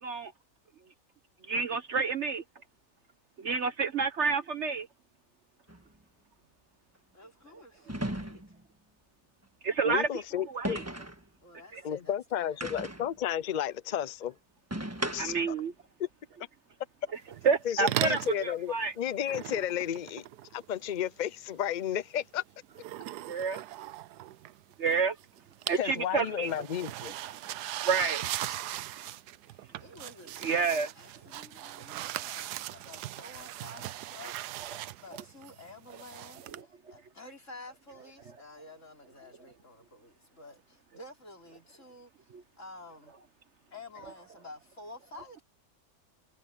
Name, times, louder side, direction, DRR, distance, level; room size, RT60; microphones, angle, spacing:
voice 1, 1.5-2.4 3.4-4.9 9.6-10.1 10.4-10.8 11.7-11.8 15.2-15.7 17.4-18.9 23.3-23.6 24.8-25.2 25.7-26.6 27.8-28.2 30.4-30.9, right 5 dB, 55° right, 1.0 m, -29 dB
sound 1, 5.7-5.8 7.9-8.6 10.6-11.2 12.6-13.1 14.7-15.5, right 1 dB, 10° right, 1.4 m, -36 dB
voice 2, 7.1-8.6 11.4-12.7 29.5-34.7 35.0-43.2 43.7-45.4, left 2 dB, 50° left, 5.5 m, -50 dB
voice 3, 9.8-10.8 11.8-14.3 15.1-15.5 16.0-16.1 17.6-20.2 20.5-22.4 25.8-27.1, left 10 dB, 75° left, 0.4 m, -32 dB
sound 2, 17.3-17.6 17.9-18.4 19.2-20.9 22.7-24.9 25.2-25.9 26.2-36.6, right 14 dB, 85° right, 1.2 m, -39 dB
omnidirectional pair, 1.7 m